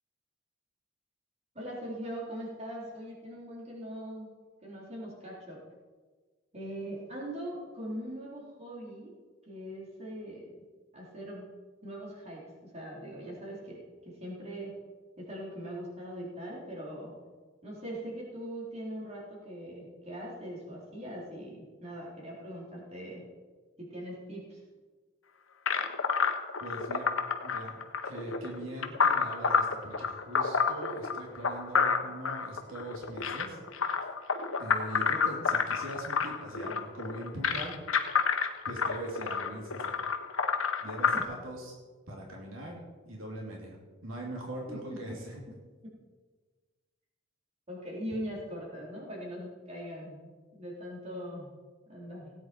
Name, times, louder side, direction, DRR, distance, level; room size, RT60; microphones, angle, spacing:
voice 1, 1.5-4.3 4.6-5.6 6.5-9.1 9.5-10.5 10.9-11.5 11.8-14.7 15.2-17.1 17.6-23.2 23.8-24.6 41.1-41.2 44.7-44.8 47.7-50.2 50.5-51.5 51.9-52.3, equal, 35° right, -4 dB, 4.0 m, -41 dB
sound 1, 25.7-41.2, left 5 dB, 85° left, 1.1 m, -29 dB
voice 2, 26.6-33.6 34.6-38.1 38.6-40.0 40.8-41.8 42.1-45.4, right 1 dB, 90° right, -1 dB, 2.8 m, -41 dB
17.5 x 9.3 x 4.5 m, 1.4 s
head